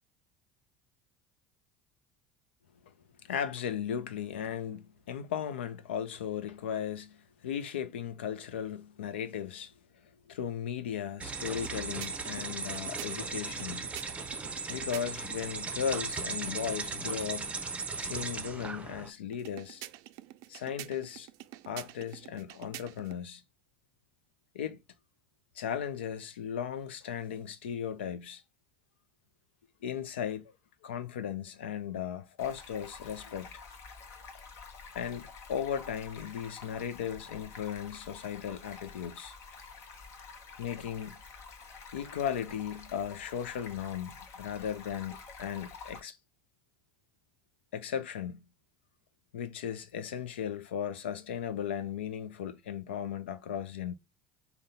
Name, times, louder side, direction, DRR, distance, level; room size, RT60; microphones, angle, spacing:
voice 1, 3.2-9.7 10.0-13.9 14.7-17.6 18.0-19.8 20.5-21.3 21.7-23.4 24.5-24.8 25.6-28.4 29.8-30.5 30.8-33.5 34.9-39.3 40.6-41.2 41.9-46.2 47.7-48.4 49.3-53.9, left 8 dB, 90° left, 0.5 m, -36 dB
sound 1, 11.2-19.1, right 4 dB, 20° right, 0.6 m, -37 dB
sound 2, 11.5-15.4 19.3-23.2, right 15 dB, 70° right, 0.4 m, -48 dB
Stream, 32.4-46.0, left 5 dB, 55° left, 1.0 m, -49 dB
3.7 x 2.2 x 4.1 m
hypercardioid pair, 80°, 6 cm